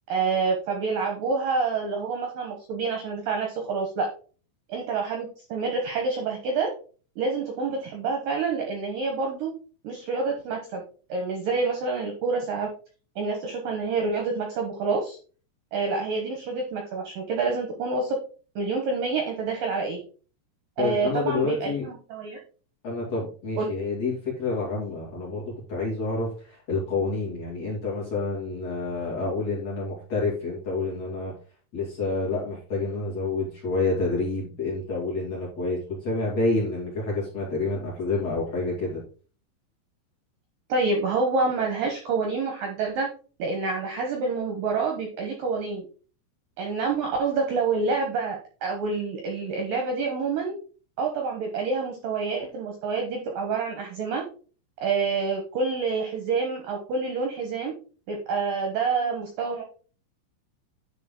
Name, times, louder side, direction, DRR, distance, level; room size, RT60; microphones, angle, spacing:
voice 1, 0.1-4.1 4.7-6.7 7.2-9.5 9.8-10.8 11.1-12.7 13.2-15.2 15.7-18.2 18.6-20.0 20.8-22.4 23.6-23.7 40.7-43.1 43.4-45.9 46.6-50.6 51.0-54.2 54.8-57.7 58.1-59.6, right 4 dB, 80° right, 2 dB, 2.0 m, -27 dB
voice 2, 20.8-21.9 22.8-31.3 31.7-39.0, left 3 dB, 40° left, -5 dB, 2.7 m, -28 dB
10.0 x 4.4 x 3.7 m, 0.38 s
omnidirectional pair, 5.6 m